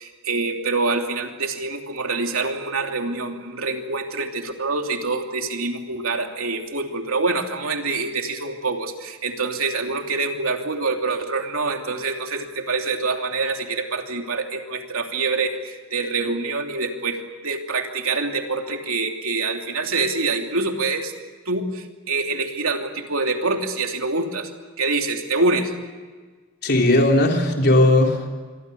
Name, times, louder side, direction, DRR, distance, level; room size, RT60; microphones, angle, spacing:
voice 1, 0.0-21.1 21.4-24.5 24.8-25.7, right 3 dB, 75° right, 3 dB, 3.0 m, -25 dB
voice 2, 26.6-28.3, left 1 dB, 50° left, 2 dB, 3.9 m, -17 dB
27.0 x 23.5 x 6.9 m, 1.4 s
head